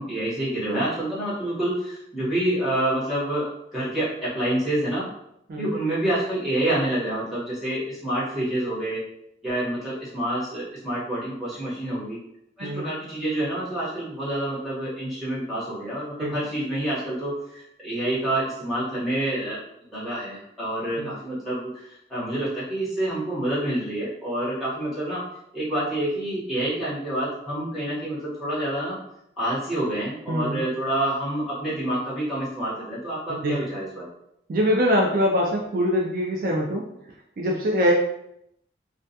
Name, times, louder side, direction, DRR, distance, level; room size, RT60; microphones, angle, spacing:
voice 1, 0.0-5.1 5.6-9.0 9.4-12.2 12.6-19.6 19.9-25.2 25.5-29.0 29.4-34.1, right 1 dB, ahead, -11 dB, 1.0 m, -27 dB
voice 2, 30.3-30.6 33.3-33.7 34.5-36.8 37.4-37.9, equal, 50° right, -1 dB, 0.3 m, -23 dB
2.2 x 2.2 x 2.6 m, 0.78 s
head